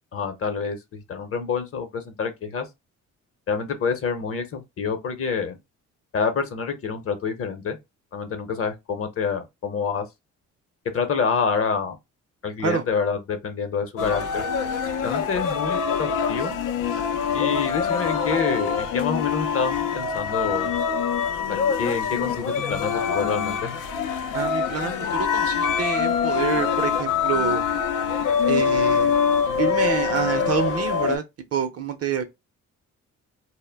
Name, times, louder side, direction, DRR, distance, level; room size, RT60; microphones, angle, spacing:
voice 1, 0.1-0.8 1.1-2.7 3.5-5.6 6.1-7.8 8.1-10.1 10.9-12.0 12.4-14.5 15.0-16.6 17.3-20.7 21.5-23.7, left 5 dB, 50° left, 0.7 m, -27 dB
sound 1, 14.0-31.2, left 6 dB, 85° left, 0.5 m, -24 dB
voice 2, 24.3-27.6 28.5-29.2 29.6-31.2 31.5-32.2, right 7 dB, 55° right, 0.6 m, -27 dB
2.2 x 2.1 x 3.3 m
cardioid pair, 90°, 30 cm